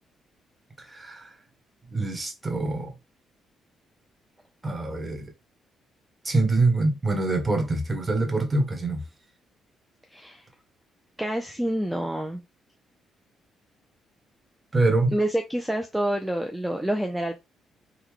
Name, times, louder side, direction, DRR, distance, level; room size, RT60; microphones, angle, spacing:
voice 1, 0.8-1.3 1.9-2.9 4.6-5.2 6.2-9.0 14.7-15.1, right 2 dB, 20° right, 1.2 m, -25 dB
voice 2, 10.1-10.4 11.2-12.4 15.1-17.4, right 1 dB, 5° right, 0.5 m, -27 dB
3.7 x 2.3 x 3.1 m
cardioid pair, 90°, 0 cm